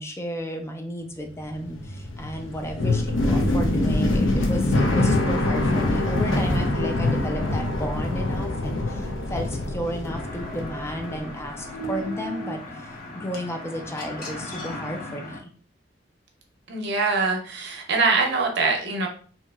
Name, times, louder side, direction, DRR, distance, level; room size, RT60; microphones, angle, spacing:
voice 1, 0.0-15.5, equal, 15° left, 4 dB, 0.4 m, -33 dB
sound 1, 1.3-11.5 11.7-12.6, left 2 dB, 85° left, 0.6 m, -24 dB
sound 2, 10.1-15.4, left 2 dB, 50° left, 0.8 m, -38 dB
voice 2, 16.7-19.1, right 4 dB, 60° right, 2 dB, 0.7 m, -23 dB
2.8 x 2.8 x 2.3 m, 0.43 s
head